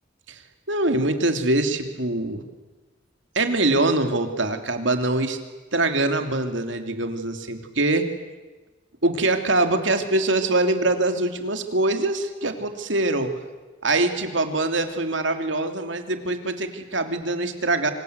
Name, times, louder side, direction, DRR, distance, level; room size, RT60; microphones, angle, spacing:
voice 1, 0.7-2.4 3.3-5.4 5.7-8.1 9.0-13.3 13.8-17.9, right 2 dB, 70° right, 7 dB, 2.9 m, -23 dB
27.5 x 26.0 x 8.1 m, 1.2 s
head